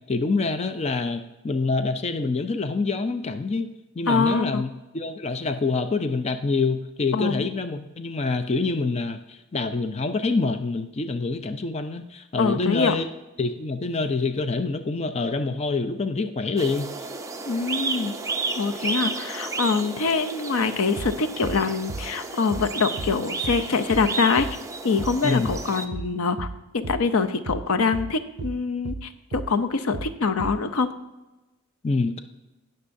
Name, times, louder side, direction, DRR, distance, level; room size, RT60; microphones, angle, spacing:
voice 1, 0.1-3.7 4.0-13.1 13.4-16.9 25.2-25.5 31.8-32.2, left 3 dB, 30° left, 9 dB, 0.5 m, -26 dB
voice 2, 4.1-4.6 7.1-7.5 12.4-13.0 17.5-18.1 18.5-24.5 24.8-26.5 26.7-30.9, left 4 dB, 75° left, 10 dB, 0.6 m, -24 dB
sound 1, 16.6-25.9, right 4 dB, 15° right, 0.6 m, -32 dB
sound 2, 21.0-21.2 21.4-21.6 21.9-22.1 22.5-22.7 23.0-23.2 23.4-23.6 23.9-24.1 24.4-24.6 25.0-25.2 25.4-25.6 25.9-26.1 26.4-26.6 26.8-27.0 27.5-27.7 27.9-28.1 28.4-28.6 28.8-29.0 29.3-29.5 29.9-30.1 30.4-30.6, right 3 dB, 60° right, 0.6 m, -34 dB
18.0 x 6.6 x 2.6 m, 1.1 s
head